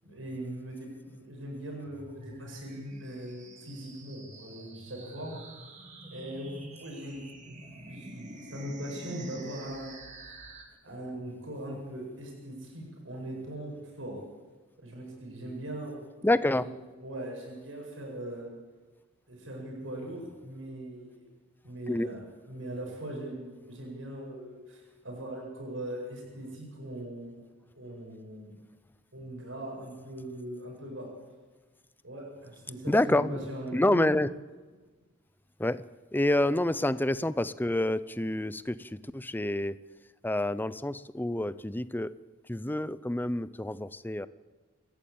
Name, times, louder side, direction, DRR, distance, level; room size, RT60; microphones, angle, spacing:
voice 1, 0.0-5.4 6.1-7.5 7.8-10.1 10.8-14.2 14.8-16.0 16.5-16.7 17.0-18.5 19.3-21.2 21.6-27.4 27.7-28.5 29.1-31.1 32.0-34.1, right 1 dB, 85° right, -1 dB, 8.0 m, -40 dB
sound 1, 1.8-10.6, right 1 dB, 40° right, 3.5 m, -47 dB
voice 2, 16.2-16.6 21.9-22.1 32.9-33.4 33.7-34.3 35.6-35.8 36.1-39.8 40.2-42.1 42.5-44.3, left 1 dB, 10° left, 16 dB, 0.6 m, -28 dB
28.0 x 14.0 x 8.7 m, 1.3 s
head